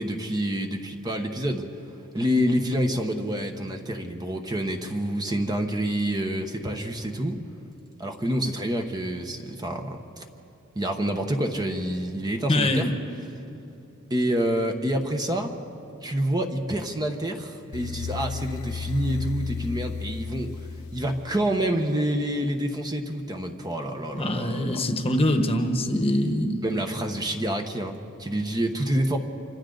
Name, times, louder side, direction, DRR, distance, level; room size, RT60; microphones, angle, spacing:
voice 1, 0.0-1.7 2.1-7.4 8.0-10.2 10.7-12.9 14.1-15.5 16.0-20.5 20.9-24.8 26.6-29.2, right 1 dB, 20° right, 4 dB, 1.0 m, -27 dB
voice 2, 12.5-13.0 24.1-26.6, left 1 dB, 30° left, 6 dB, 1.2 m, -24 dB
sound 1, 17.7-21.8, left 6 dB, 75° left, 0.7 m, -34 dB
27.5 x 25.5 x 3.9 m, 2.7 s
head